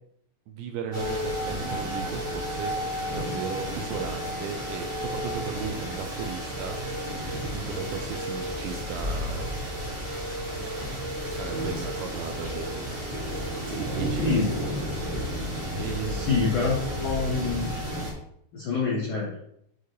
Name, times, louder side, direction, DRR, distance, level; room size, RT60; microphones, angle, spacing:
voice 1, 0.5-6.8 7.5-9.7 10.6-10.7 11.3-14.3 15.8-16.4, right 7 dB, 80° right, 4 dB, 2.8 m, -36 dB
sound 1, 0.9-18.1, equal, 40° right, 1.7 m, -32 dB
voice 2, 16.1-17.7 18.5-19.4, left 4 dB, 75° left, -5 dB, 1.8 m, -26 dB
8.1 x 5.1 x 3.1 m, 0.74 s
omnidirectional pair, 5.5 m